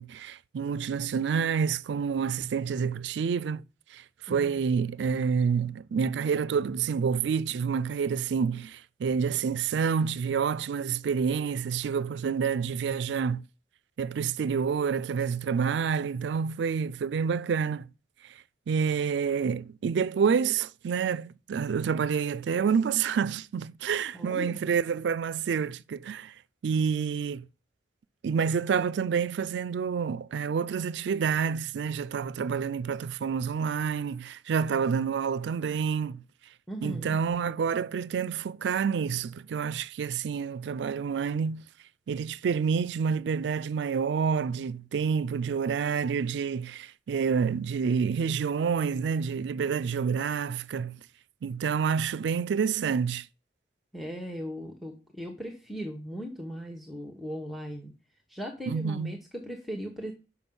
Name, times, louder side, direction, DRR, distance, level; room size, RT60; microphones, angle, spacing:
voice 1, 0.0-3.6 3.9-13.4 14.0-17.9 18.7-26.3 26.6-27.5 28.2-36.2 36.8-41.7 42.1-51.0 51.4-53.3 58.7-59.2, right 6 dB, 70° right, 0.3 m, -28 dB
voice 2, 4.3-4.6 24.1-24.6 36.7-37.2 53.9-57.9 58.3-60.1, equal, ahead, 0.9 m, -38 dB
6.1 x 5.8 x 5.4 m
head